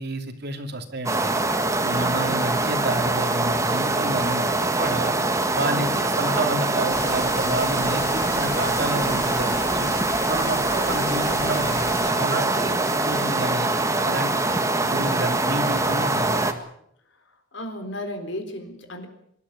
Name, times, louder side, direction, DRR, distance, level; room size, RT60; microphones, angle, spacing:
voice 1, 0.0-1.4 1.8-5.1 5.5-9.9 10.3-13.7 14.0-14.4 14.8-16.4, right 2 dB, 55° right, 6 dB, 2.8 m, -30 dB
sound 1, 1.1-16.5, right 2 dB, 15° right, 1.7 m, -23 dB
voice 2, 1.8-2.3 5.7-6.1 17.1-19.1, left 1 dB, 60° left, 8 dB, 3.8 m, -35 dB
sound 2, 6.9-12.1, left 2 dB, 15° left, 1.6 m, -35 dB
25.5 x 13.0 x 9.7 m, 0.72 s
head